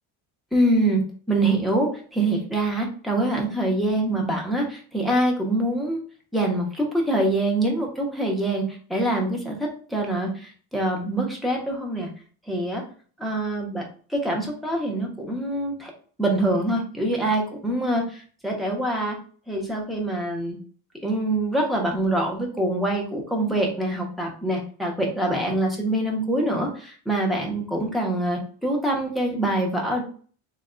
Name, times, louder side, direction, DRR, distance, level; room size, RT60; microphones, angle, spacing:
voice 1, 0.5-1.0 1.3-6.0 6.3-12.1 12.5-12.8 13.2-13.8 14.1-15.9 16.2-19.2 19.5-20.6 21.0-30.0, right 1 dB, ahead, -1 dB, 0.6 m, -25 dB
3.3 x 2.3 x 3.6 m, 0.43 s
cardioid pair, 170°, 50 cm